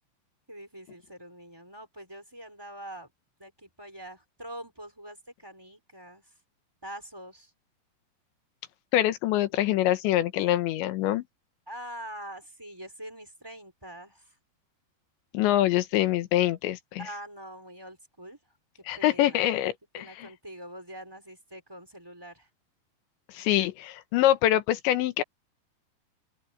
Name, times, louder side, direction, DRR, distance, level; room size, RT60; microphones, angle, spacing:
voice 1, 0.5-3.1 3.4-6.3 6.8-7.5 11.7-14.4 17.0-18.4 18.7-19.5 20.0-22.5, right 1 dB, 5° right, 4.0 m, -44 dB
voice 2, 8.9-11.2 15.3-17.1 18.9-20.3 23.3-25.2, left 13 dB, 85° left, 3.5 m, -25 dB
open air
omnidirectional pair, 5.1 m